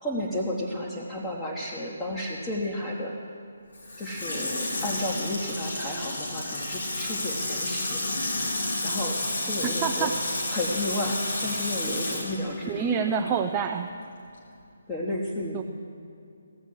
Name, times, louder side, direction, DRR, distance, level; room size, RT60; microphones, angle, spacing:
voice 1, 0.0-3.1 4.0-8.0 8.8-10.1 10.5-13.0 14.9-15.6, left 1 dB, 15° left, -5 dB, 1.3 m, -32 dB
Water tap faucet / Sink (filling or washing), 3.7-13.4 13.8-13.9, left 2 dB, 60° left, 2.9 m, -31 dB
voice 2, 9.8-10.1 12.7-13.9 15.5-15.6, right 7 dB, 20° right, 4 dB, 0.5 m, -27 dB
16.5 x 7.3 x 7.5 m, 2.6 s
figure-of-eight pair, 145°, 0 cm